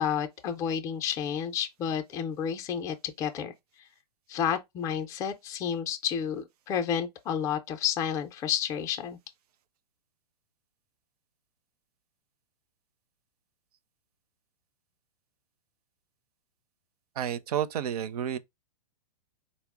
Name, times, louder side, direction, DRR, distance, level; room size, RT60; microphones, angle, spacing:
voice 1, 0.0-3.5 4.3-9.2, left 8 dB, 15° left, 0.4 m, -30 dB
voice 2, 17.2-18.4, right 9 dB, 70° right, 0.5 m, -30 dB
4.2 x 2.0 x 3.4 m
hypercardioid pair, 145°, 20 cm